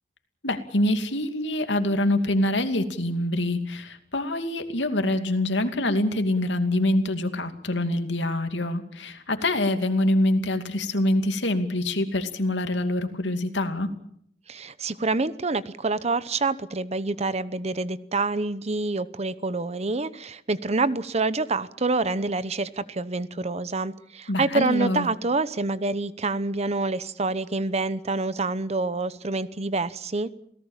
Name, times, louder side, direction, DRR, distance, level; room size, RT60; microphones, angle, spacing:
voice 1, 0.4-13.9 24.3-25.1, left 1 dB, 85° left, 7 dB, 2.6 m, -25 dB
voice 2, 14.5-30.3, right 3 dB, 35° right, 16 dB, 0.9 m, -27 dB
28.0 x 18.0 x 7.4 m, 0.69 s
head